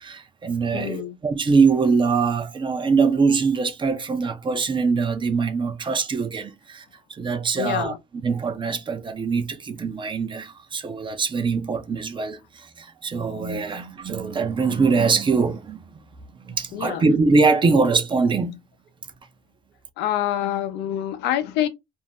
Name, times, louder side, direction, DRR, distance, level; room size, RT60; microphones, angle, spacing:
voice 1, 0.0-7.9 8.2-15.8 16.4-18.6, right 4 dB, 30° right, 0.6 m, -23 dB
voice 2, 0.7-1.2 7.6-8.0 16.7-17.0 20.0-21.7, left 11 dB, 90° left, 0.6 m, -26 dB
2.6 x 2.1 x 3.5 m
cardioid pair, 110°, 17 cm